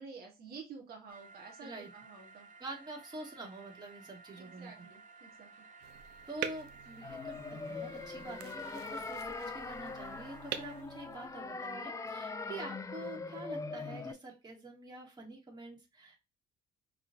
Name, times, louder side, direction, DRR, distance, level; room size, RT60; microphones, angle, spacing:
voice 1, 0.0-2.5 4.3-5.5, right 5 dB, 65° right, 1 dB, 1.4 m, -50 dB
sound 1, 1.1-10.8, right 3 dB, 50° right, 0.8 m, -55 dB
voice 2, 2.6-4.7 6.3-16.2, right 2 dB, 25° right, -2 dB, 2.1 m, -47 dB
sound 2, 5.8-11.7, right 10 dB, 90° right, 0.7 m, -46 dB
sound 3, 7.0-14.1, left 4 dB, 20° left, 0.5 m, -42 dB
5.9 x 3.1 x 2.6 m, 0.27 s
cardioid pair, 110°, 17 cm